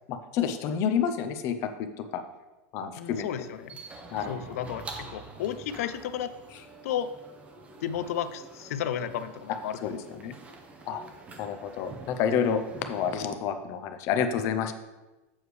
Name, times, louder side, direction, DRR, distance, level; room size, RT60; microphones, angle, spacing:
voice 1, 0.1-1.9 2.1-2.2 2.7-3.3 4.1-4.6 9.8-10.3 10.9-11.0 11.4-12.6 12.9-14.7, left 7 dB, 40° left, 8 dB, 0.5 m, -29 dB
voice 2, 3.0-3.8 4.3-6.3 6.8-7.1 7.8-10.3, left 9 dB, 85° left, 12 dB, 0.5 m, -33 dB
sound 1, 3.1-13.3, right 3 dB, 15° right, 0.6 m, -46 dB
7.1 x 6.4 x 3.2 m, 1.1 s
supercardioid pair, 165°, 8 cm